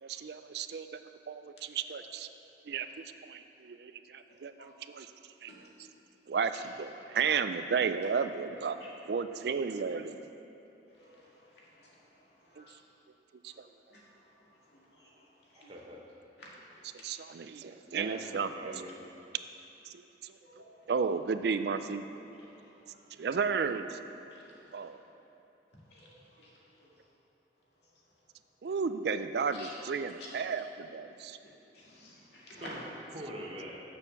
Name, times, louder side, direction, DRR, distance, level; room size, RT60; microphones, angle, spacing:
voice 1, 0.0-1.0 1.3-2.3 2.7-2.9 3.2-5.1 5.4-5.5 6.3-10.2 12.6-12.7 13.4-13.7 17.0-18.8 19.9-20.0 20.2-20.3 20.9-22.0 23.2-24.0 24.7-25.0 28.6-31.4, right 5 dB, 60° right, 10 dB, 0.4 m, -33 dB
voice 2, 15.5-16.1 17.0-17.1 17.6-19.0 32.6-33.8, equal, 30° right, -1 dB, 1.0 m, -45 dB
voice 3, 25.9-26.4 29.6-29.7 30.2-30.3 31.7-32.7, left 1 dB, 65° left, -5 dB, 2.1 m, -50 dB
7.1 x 6.8 x 6.9 m, 2.9 s
head